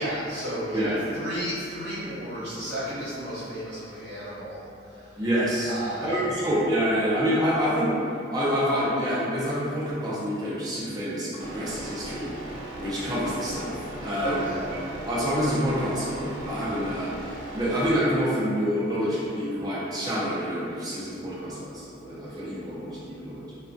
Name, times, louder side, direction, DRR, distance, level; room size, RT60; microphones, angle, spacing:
voice 1, 0.0-5.2 5.7-6.2 14.2-14.9 22.3-22.4, equal, 60° right, -12 dB, 0.9 m, -33 dB
voice 2, 0.7-1.0 5.2-7.9 8.3-12.3 12.8-13.7 14.0-14.5 15.0-17.1 17.5-23.4, equal, 20° right, -8 dB, 0.5 m, -27 dB
sound 1, 11.4-17.9, right 1 dB, 80° right, 0.5 m, -38 dB
2.2 x 2.2 x 2.5 m, 2.6 s
head